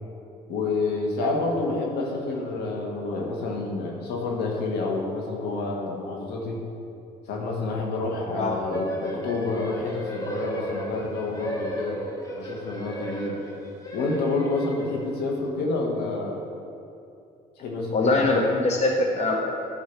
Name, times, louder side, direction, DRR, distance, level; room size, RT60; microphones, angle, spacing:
voice 1, 0.5-6.6 7.3-12.0 12.4-13.4 13.9-16.4 17.6-18.3, left 3 dB, 80° left, 0 dB, 1.6 m, -28 dB
sound 1, 8.7-15.3, right 1 dB, 20° left, 1.3 m, -35 dB
voice 2, 17.9-19.4, left 2 dB, 40° left, 1 dB, 1.0 m, -22 dB
10.5 x 4.7 x 5.9 m, 2.6 s
cardioid pair, 110°, 17 cm